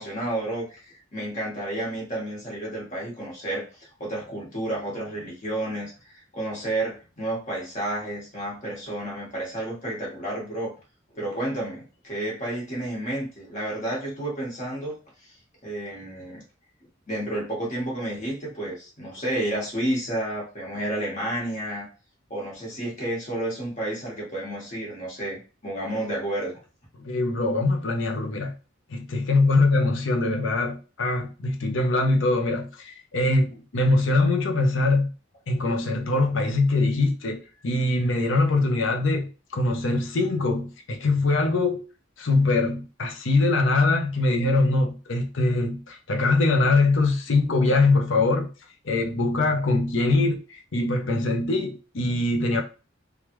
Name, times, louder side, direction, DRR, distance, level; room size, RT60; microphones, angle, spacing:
voice 1, 0.0-10.7 11.1-15.0 15.6-16.4 17.1-21.9 22.3-26.5, right 1 dB, 40° left, 1.5 m, -31 dB
voice 2, 27.0-28.5 28.9-35.1 35.5-41.8 42.2-48.5 48.8-52.6, left 2 dB, 70° left, 0.7 m, -23 dB
3.3 x 2.4 x 3.0 m
head